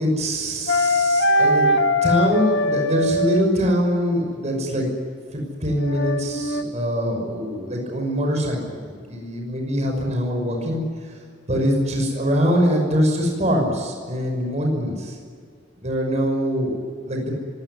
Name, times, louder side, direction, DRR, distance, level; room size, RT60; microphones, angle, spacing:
voice 1, 0.0-4.9 5.3-10.8 11.5-15.1 15.8-17.4, equal, 40° right, 1 dB, 6.1 m, -23 dB
sound 1, 0.7-3.6 5.8-6.6, left 1 dB, 65° left, 1.8 m, -21 dB
26.0 x 18.0 x 9.7 m, 2.1 s
head